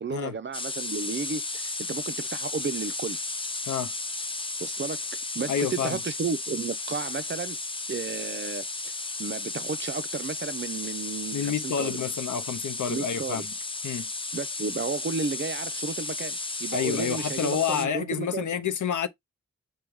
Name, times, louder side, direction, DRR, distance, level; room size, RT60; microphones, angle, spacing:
voice 1, 0.0-3.2 4.6-5.0 5.3-7.6 7.9-8.9 9.2-12.0 12.9-13.4 14.3-18.5, right 5 dB, 35° right, 0.5 m, -33 dB
sound 1, 0.5-17.9, left 3 dB, 15° left, 0.4 m, -34 dB
voice 2, 5.5-6.0 11.3-13.5 13.8-14.1 16.7-19.1, left 7 dB, 70° left, 0.6 m, -29 dB
5.0 x 2.2 x 4.6 m
wide cardioid pair, 70°, 31 cm